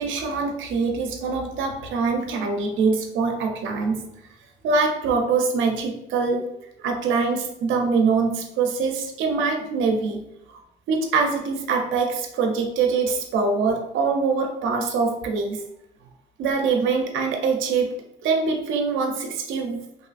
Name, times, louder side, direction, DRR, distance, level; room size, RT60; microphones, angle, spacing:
voice 1, 0.0-4.0 4.6-6.5 6.8-10.2 10.5-10.6 10.9-15.6 16.4-17.9 18.2-19.8, right 4 dB, 80° right, 4 dB, 0.5 m, -23 dB
2.6 x 2.4 x 2.4 m, 0.79 s
cardioid pair, 90°, 20 cm